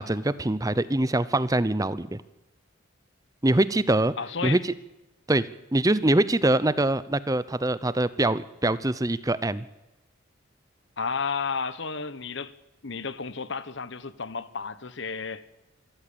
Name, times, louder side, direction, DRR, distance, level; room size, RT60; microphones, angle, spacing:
voice 1, 0.0-2.2 3.4-4.1 4.4-4.7 5.3-9.7, right 1 dB, 15° right, 0.6 m, -24 dB
voice 2, 4.2-4.6 11.0-12.5 12.8-15.5, left 5 dB, 60° left, 1.1 m, -32 dB
26.0 x 14.0 x 8.7 m
head